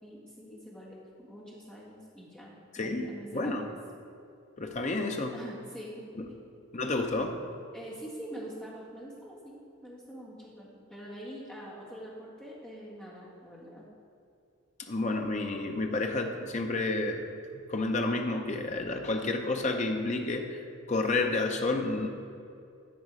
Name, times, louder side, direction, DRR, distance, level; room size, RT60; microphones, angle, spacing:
voice 1, 0.0-3.7 5.3-6.0 6.3-6.5 7.7-13.9, equal, 5° left, -8 dB, 1.8 m, -45 dB
voice 2, 2.7-3.1 3.3-3.7 4.6-5.3 6.2-6.3 6.7-7.4 14.8-17.3 17.7-22.1, left 2 dB, 35° left, 4 dB, 0.6 m, -30 dB
12.0 x 4.2 x 4.8 m, 2.5 s
head